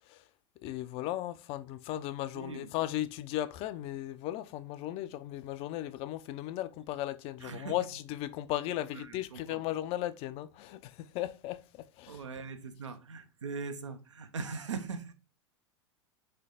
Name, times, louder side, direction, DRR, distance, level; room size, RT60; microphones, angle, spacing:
voice 1, 0.6-12.2, left 14 dB, 40° left, 0.4 m, -36 dB
voice 2, 2.3-2.7 7.4-7.9 8.9-9.7 12.1-15.1, right 4 dB, 80° right, 0.6 m, -41 dB
3.7 x 3.3 x 4.0 m
figure-of-eight pair, 90°, 15 cm